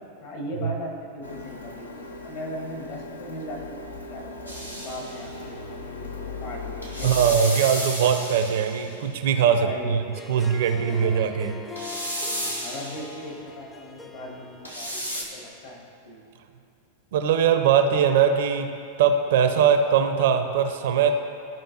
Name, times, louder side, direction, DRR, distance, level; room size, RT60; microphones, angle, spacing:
voice 1, 0.2-7.1 9.6-10.2 11.0-11.1 12.2-16.2, equal, 50° left, -1 dB, 1.8 m, -38 dB
Printer, 1.2-7.5, left 3 dB, 70° left, 0.6 m, -38 dB
sound 1, 4.5-5.3 6.8-9.1 11.8-13.2 14.6-15.2, equal, 90° left, 1.1 m, -33 dB
voice 2, 7.0-10.0 10.3-11.5 17.1-18.7 19.0-21.1, right 7 dB, 55° right, 7 dB, 0.5 m, -21 dB
Harp, 10.0-15.4, left 4 dB, 10° left, 0.6 m, -42 dB
13.0 x 5.2 x 2.9 m, 2.5 s
figure-of-eight pair, 90°, 0 cm